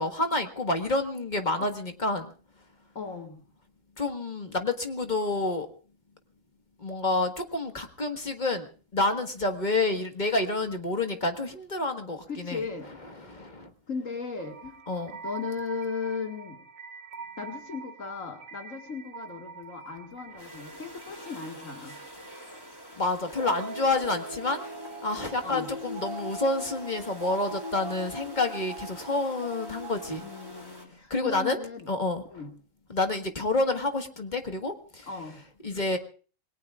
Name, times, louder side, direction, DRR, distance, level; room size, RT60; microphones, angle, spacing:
voice 1, 0.0-2.3 4.0-5.7 6.8-8.7 8.9-12.6 13.2-13.7 14.9-15.1 23.0-24.6 25.0-30.2 31.1-31.6 31.9-32.2 32.9-35.1 35.6-36.0, left 2 dB, 35° left, 5 dB, 1.7 m, -28 dB
voice 2, 2.9-3.4 12.3-12.9 13.9-14.8 15.2-16.6 17.4-22.0 25.4-25.7 30.2-31.9 32.3-32.5 35.1-35.4, left 5 dB, 75° left, 3 dB, 2.3 m, -37 dB
sound 1, 14.4-30.7, right 2 dB, 90° right, 1.5 m, -42 dB
sound 2, 20.4-30.9, equal, 15° left, 2.9 m, -47 dB
27.5 x 21.0 x 2.4 m, 0.40 s
omnidirectional pair, 1.4 m